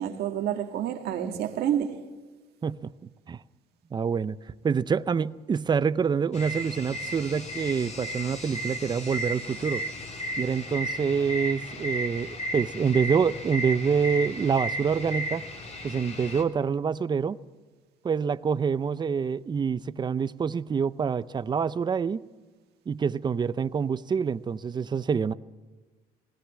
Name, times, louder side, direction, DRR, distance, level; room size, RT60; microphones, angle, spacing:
voice 1, 0.0-2.0, right 10 dB, 75° right, 1.7 m, -29 dB
voice 2, 2.6-2.9 3.3-3.4 3.9-4.4 4.6-9.8 10.4-15.4 15.8-17.4 18.0-22.2 22.9-25.3, right 6 dB, 25° right, 0.5 m, -26 dB
sound 1, 6.3-16.4, equal, 40° left, 3.3 m, -34 dB
20.0 x 18.0 x 7.5 m
cardioid pair, 110°, 17 cm